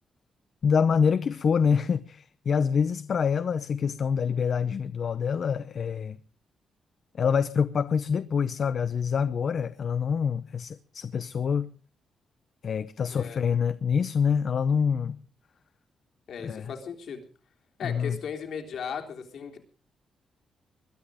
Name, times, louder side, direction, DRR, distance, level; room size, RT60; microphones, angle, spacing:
voice 1, 0.6-6.2 7.1-11.7 12.6-15.2 16.4-16.7 17.8-18.2, left 6 dB, 45° left, 0.7 m, -26 dB
voice 2, 13.1-13.4 16.3-17.2 17.8-19.6, left 6 dB, 60° left, 3.6 m, -37 dB
21.5 x 12.5 x 5.0 m
wide cardioid pair, 160°, 0 cm